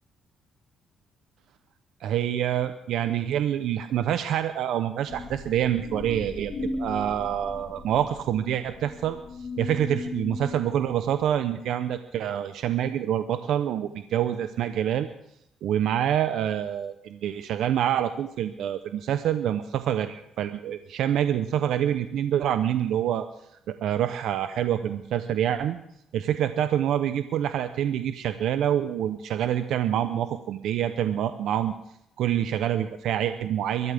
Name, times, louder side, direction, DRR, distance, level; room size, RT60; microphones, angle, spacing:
voice 1, 2.0-6.5 6.8-9.2 9.6-15.1 15.6-23.3 23.7-25.8 26.1-31.7 32.2-33.9, right 10 dB, 80° right, 10 dB, 0.8 m, -26 dB
sound 1, 5.1-10.8, left 2 dB, 60° left, 5.7 m, -37 dB
23.5 x 12.5 x 3.5 m, 0.76 s
cardioid pair, 90°, 0 cm